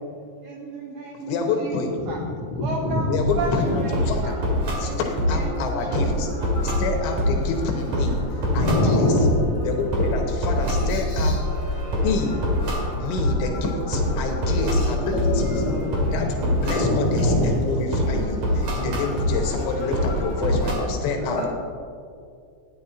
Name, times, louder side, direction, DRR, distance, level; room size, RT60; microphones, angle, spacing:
voice 1, 0.4-2.2 2.6-4.3 4.8-6.1 6.4-6.5 6.9-7.3 8.8-9.1 20.5-20.7, right 3 dB, 80° right, 0 dB, 2.0 m, -34 dB
voice 2, 1.3-2.0 3.1-4.4 4.8-6.3 6.6-9.2 9.6-11.4 12.0-12.4 13.0-15.7 16.1-21.5, left 4 dB, 85° left, 3 dB, 3.2 m, -28 dB
sound 1, 3.2-20.7, equal, 50° right, 3.3 m, -25 dB
sound 2, 4.0-20.4, left 1 dB, 55° left, 2.6 m, -39 dB
voice 3, 8.5-9.2 10.8-11.4 14.7-16.1 16.6-17.5 17.9-18.2 21.2-21.5, left 1 dB, 25° left, -10 dB, 2.4 m, -24 dB
13.0 x 9.8 x 4.3 m, 2.3 s
omnidirectional pair, 5.1 m